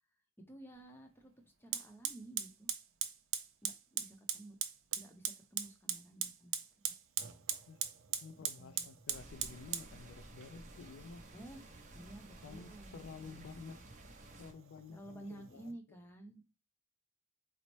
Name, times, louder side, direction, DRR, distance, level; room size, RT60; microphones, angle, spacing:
voice 1, 0.4-1.3 1.6-2.7 3.6-4.6 5.0-6.6 6.8-6.9 8.5-8.9 11.3-13.8 14.9-16.4, right 1 dB, 10° left, 0.6 m, -53 dB
Fire, 0.7-0.8 1.7-15.7, right 10 dB, 80° right, 0.5 m, -42 dB
voice 2, 8.2-11.2 12.4-13.8 14.4-15.7, left 5 dB, 75° left, 0.3 m, -51 dB
sound 1, 9.1-14.5, right 2 dB, 40° right, 0.6 m, -54 dB
4.1 x 2.0 x 3.0 m
head